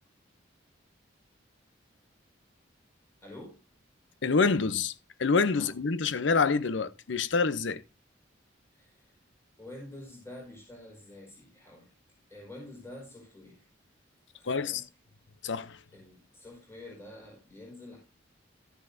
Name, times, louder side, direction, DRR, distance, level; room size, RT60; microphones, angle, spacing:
voice 1, 3.2-3.6 5.5-5.7 8.7-9.2 9.6-11.9 12.3-13.6 14.3-14.9 15.9-18.0, left 1 dB, 15° left, 5.0 m, -48 dB
voice 2, 4.2-4.9 5.2-7.8 14.5-14.8 15.4-15.8, left 4 dB, 65° left, 0.6 m, -26 dB
13.0 x 11.5 x 2.6 m
head